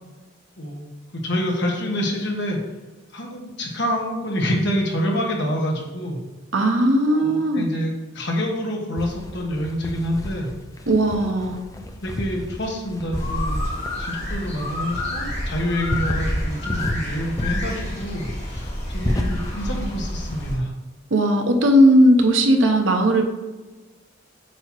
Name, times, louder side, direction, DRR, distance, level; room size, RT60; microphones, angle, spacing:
voice 1, 0.6-2.6 3.1-6.2 7.1-10.5 11.1-11.5 12.0-13.7 14.0-20.7, equal, 65° left, 0 dB, 1.3 m, -27 dB
voice 2, 6.5-7.7 10.9-11.6 21.1-23.2, equal, 80° right, 4 dB, 0.9 m, -17 dB
sound 1, 9.0-20.4, left 1 dB, 20° left, 0.5 m, -32 dB
sound 2, 13.1-20.5, left 1 dB, 35° left, 1.9 m, -29 dB
7.8 x 2.9 x 4.6 m, 1.2 s
head